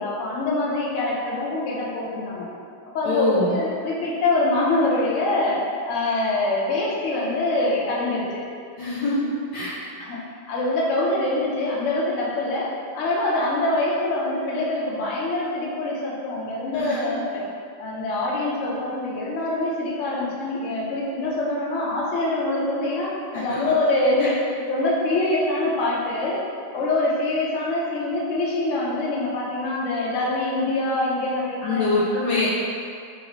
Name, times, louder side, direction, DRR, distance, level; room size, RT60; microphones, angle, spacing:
voice 1, 0.0-2.5 2.9-8.5 10.0-10.2 10.5-17.4 17.8-24.4 24.7-26.4 26.7-31.9, left 2 dB, 90° left, -5 dB, 0.6 m, -24 dB
voice 2, 3.0-3.5 8.8-9.7 16.7-17.1 23.3-23.7 24.2-24.3 31.6-32.5, left 2 dB, 70° left, -9 dB, 1.1 m, -24 dB
3.0 x 2.8 x 2.9 m, 2.3 s
omnidirectional pair, 2.1 m